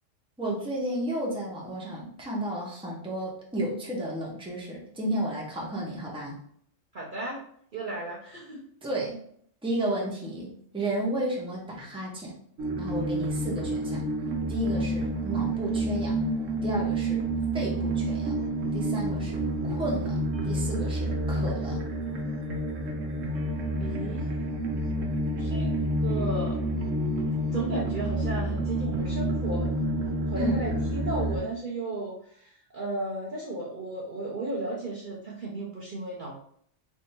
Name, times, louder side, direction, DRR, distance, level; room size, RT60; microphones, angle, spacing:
voice 1, 0.4-6.3 8.8-9.2 9.6-12.3 12.8-14.0 14.5-16.2 16.6-17.2 17.5-18.3 18.7-21.8 30.3-30.6, right 1 dB, 5° right, -3 dB, 0.8 m, -32 dB
voice 2, 6.9-7.4 7.7-8.6 23.8-24.4 25.4-25.7 26.0-26.6 27.5-29.7 30.3-36.4, right 2 dB, 50° right, -4 dB, 0.7 m, -34 dB
sound 1, 12.6-31.4, right 1 dB, 80° right, 1.1 m, -29 dB
3.5 x 2.7 x 4.2 m, 0.64 s
omnidirectional pair, 1.3 m